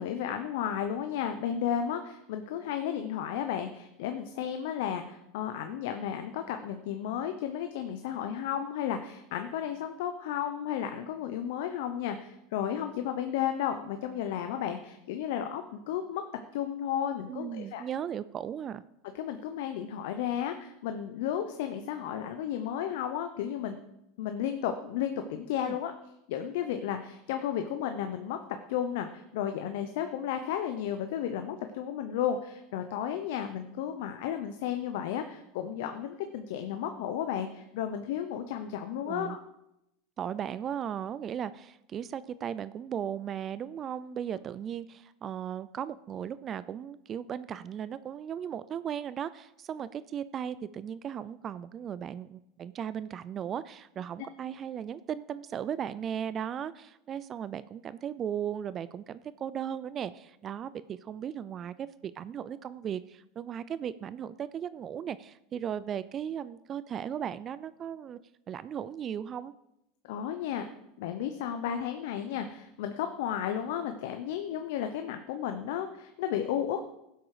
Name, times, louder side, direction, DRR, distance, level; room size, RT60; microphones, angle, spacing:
voice 1, 0.0-17.9 19.1-23.8 24.2-25.9 26.3-28.4 28.7-39.4 70.1-70.7 71.0-76.8, left 9 dB, 75° left, 7 dB, 0.9 m, -33 dB
voice 2, 17.3-18.8 25.6-25.8 39.1-39.4 40.2-68.2 68.5-69.5, right 9 dB, 35° right, 16 dB, 0.4 m, -37 dB
15.5 x 7.9 x 4.9 m, 0.85 s
supercardioid pair, 125°, 0 cm